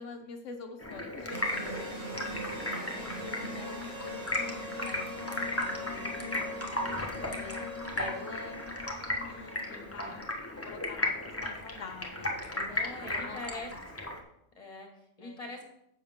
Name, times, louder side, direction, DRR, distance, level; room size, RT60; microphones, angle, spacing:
voice 1, 0.0-1.9 2.7-5.1 5.3-8.6 9.2-10.3 10.6-13.4 13.7-13.8 15.2-15.4, left 4 dB, 80° left, 4 dB, 1.1 m, -46 dB
Stream, 0.8-14.2, left 1 dB, 10° left, 1.2 m, -36 dB
sound 1, 1.3-11.7, left 1 dB, 75° right, 3.4 m, -41 dB
voice 2, 9.6-10.1 12.6-14.1 14.6-15.6, left 2 dB, 30° left, 2 dB, 1.7 m, -44 dB
10.0 x 7.1 x 3.6 m, 0.79 s
omnidirectional pair, 1.3 m